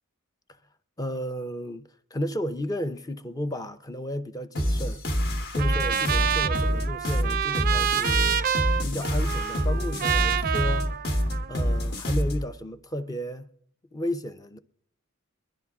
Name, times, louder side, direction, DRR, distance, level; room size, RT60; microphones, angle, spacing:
voice 1, 1.0-5.0 5.5-8.4 8.8-11.0 11.5-13.5 13.9-14.6, equal, 15° left, 0.5 m, -33 dB
sound 1, 4.5-12.5, equal, 50° left, 1.2 m, -26 dB
Trumpet, 5.6-11.8, right 8 dB, 45° right, 0.4 m, -28 dB
23.0 x 11.0 x 3.5 m
head